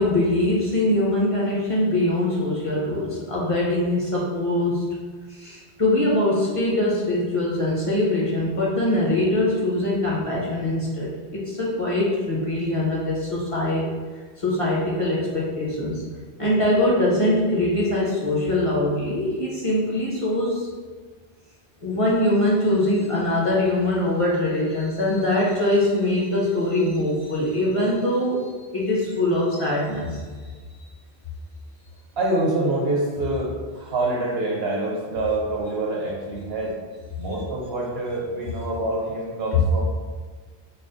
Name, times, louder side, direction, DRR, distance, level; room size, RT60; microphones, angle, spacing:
voice 1, 0.0-4.8 5.3-13.9 14.4-16.0 16.4-20.7 21.8-30.2 39.5-39.6, left 1 dB, 35° left, -6 dB, 0.7 m, -22 dB
voice 2, 32.2-36.8 37.2-39.8, right 2 dB, 75° right, -2 dB, 1.1 m, -26 dB
4.1 x 2.0 x 3.8 m, 1.4 s
omnidirectional pair, 1.1 m